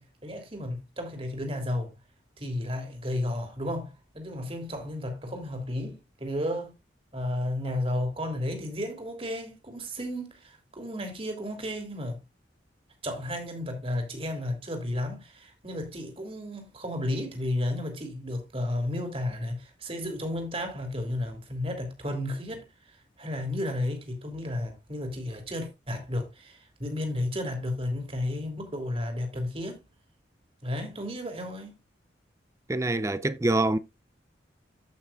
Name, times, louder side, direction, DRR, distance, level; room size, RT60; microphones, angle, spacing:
voice 1, 0.0-1.9 2.4-6.8 7.1-12.2 13.0-22.7 23.2-29.8 30.6-31.7, left 1 dB, 30° right, 2.8 m, -33 dB
voice 2, 32.7-33.8, right 2 dB, 15° right, 0.5 m, -25 dB
14.5 x 5.8 x 2.4 m
head